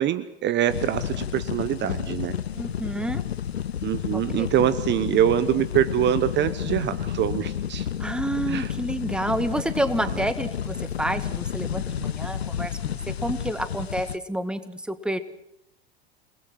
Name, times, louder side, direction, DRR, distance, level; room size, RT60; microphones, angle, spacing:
voice 1, 0.0-2.3 3.8-7.9 8.5-8.7 10.1-10.2, right 11 dB, 35° right, 15 dB, 1.1 m, -24 dB
sound 1, 0.7-14.2, left 9 dB, 85° left, 0.9 m, -31 dB
voice 2, 2.6-3.2 4.1-4.5 8.0-15.2, right 1 dB, 5° right, 11 dB, 1.8 m, -29 dB
29.0 x 20.0 x 6.3 m, 0.82 s
hypercardioid pair, 85°, 31 cm